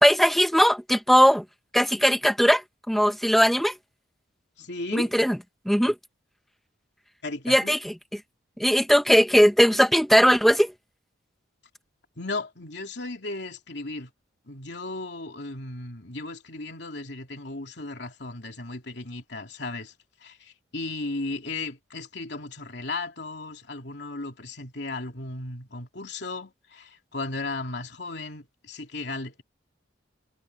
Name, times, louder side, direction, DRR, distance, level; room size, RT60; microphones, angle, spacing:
voice 1, 0.0-1.4 1.7-2.6 2.9-3.7 4.9-5.4 5.6-5.9 7.5-7.9 8.6-10.7, equal, ahead, 1.2 m, -19 dB
voice 2, 4.6-5.1 7.2-7.7 12.2-14.1 14.5-19.9 20.2-29.4, left 2 dB, 60° left, 3.3 m, -35 dB
head